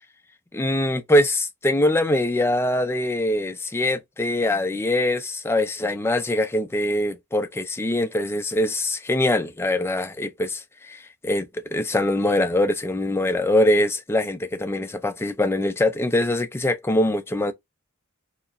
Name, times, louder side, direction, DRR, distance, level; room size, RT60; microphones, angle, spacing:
voice 1, 0.5-17.5, left 1 dB, 10° left, 0.4 m, -23 dB
2.9 x 2.2 x 2.4 m
head